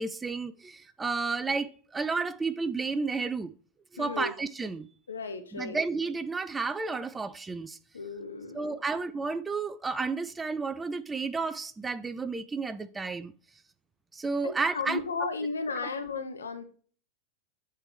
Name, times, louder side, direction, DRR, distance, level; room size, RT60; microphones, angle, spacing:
voice 1, 0.0-3.5 3.9-4.9 5.5-7.8 8.5-13.3 14.1-15.3, right 4 dB, 15° right, 0.4 m, -32 dB
voice 2, 4.0-4.3 5.1-5.8 7.9-8.8 14.4-16.6, left 4 dB, 70° left, 0.9 m, -34 dB
8.3 x 3.6 x 4.4 m
figure-of-eight pair, 90°, 0 cm